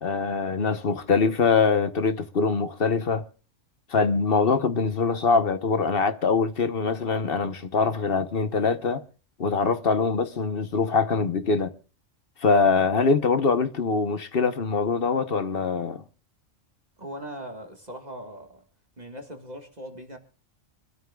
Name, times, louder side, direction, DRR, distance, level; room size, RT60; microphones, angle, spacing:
voice 1, 0.0-3.2 3.9-9.0 9.4-11.7 12.4-16.0, left 4 dB, 50° left, 1.1 m, -23 dB
voice 2, 17.0-18.6 19.0-20.2, right 1 dB, 35° right, 1.8 m, -40 dB
25.5 x 13.0 x 2.3 m
omnidirectional pair, 1.3 m